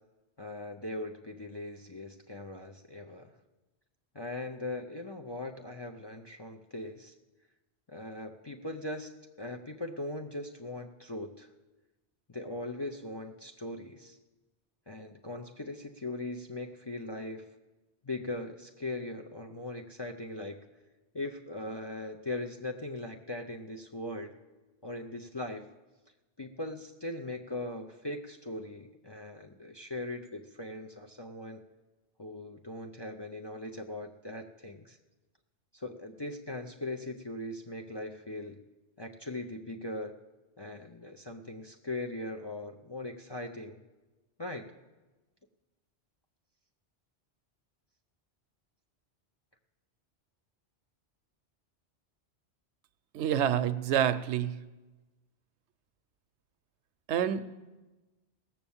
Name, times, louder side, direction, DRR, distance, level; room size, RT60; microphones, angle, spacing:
voice 1, 0.4-3.3 4.1-7.1 7.9-9.1 9.4-11.5 12.3-14.2 14.9-17.5 18.0-20.6 21.1-24.3 24.8-25.7 26.4-31.6 32.2-35.0 35.7-38.6 39.0-40.1 40.6-43.8 44.4-44.7, left 2 dB, 30° left, 3 dB, 0.5 m, -40 dB
voice 2, 53.1-54.6 57.1-57.4, right 10 dB, 80° right, 13 dB, 0.9 m, -27 dB
17.5 x 7.2 x 7.1 m, 1.2 s
omnidirectional pair, 1.2 m